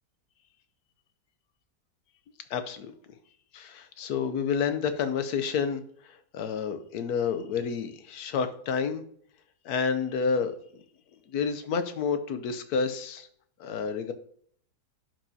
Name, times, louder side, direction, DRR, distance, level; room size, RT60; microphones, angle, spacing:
voice 1, 2.5-2.9 3.5-5.8 6.3-9.0 9.6-10.5 11.3-13.3 13.6-14.1, left 6 dB, 70° left, 10 dB, 1.2 m, -29 dB
11.5 x 6.1 x 2.8 m, 0.62 s
omnidirectional pair, 1.8 m